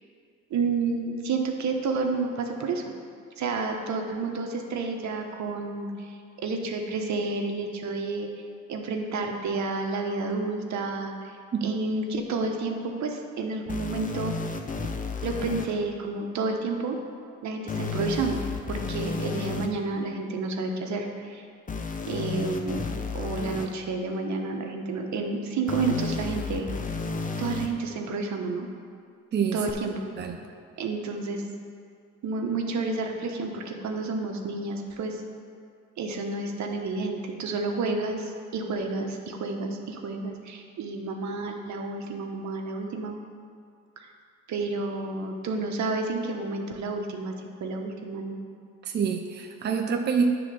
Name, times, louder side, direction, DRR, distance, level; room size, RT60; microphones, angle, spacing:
voice 1, 0.5-2.8 3.4-6.1 6.4-8.3 8.7-11.3 11.6-14.3 15.2-17.0 17.4-21.4 22.1-22.8 23.1-26.7 27.4-28.7 29.5-30.1 30.8-31.4 32.2-35.2 36.0-43.1 44.0-44.1 44.5-47.3 47.6-48.4, right 3 dB, 65° right, 3 dB, 1.1 m, -30 dB
sound 1, 13.7-15.7 17.7-19.7 21.7-23.7 25.7-27.7 29.7-29.8, left 4 dB, 25° left, 0.7 m, -32 dB
voice 2, 29.3-29.6 30.2-30.4 48.8-50.4, right 6 dB, 35° right, 3 dB, 0.6 m, -26 dB
9.7 x 3.9 x 6.8 m, 2.3 s
cardioid pair, 90°, 30 cm